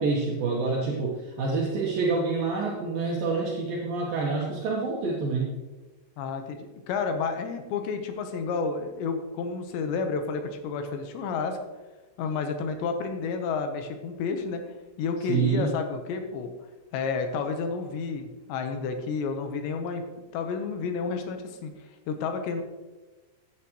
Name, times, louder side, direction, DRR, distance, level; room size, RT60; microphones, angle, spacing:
voice 1, 0.0-5.5 15.3-15.8, right 4 dB, 65° right, -2 dB, 2.7 m, -27 dB
voice 2, 6.2-11.6 12.2-14.6 15.0-16.5 16.9-20.0 20.3-21.7 22.1-22.6, left 5 dB, 80° left, 6 dB, 3.3 m, -30 dB
15.0 x 10.0 x 3.2 m, 1.2 s
omnidirectional pair, 5.1 m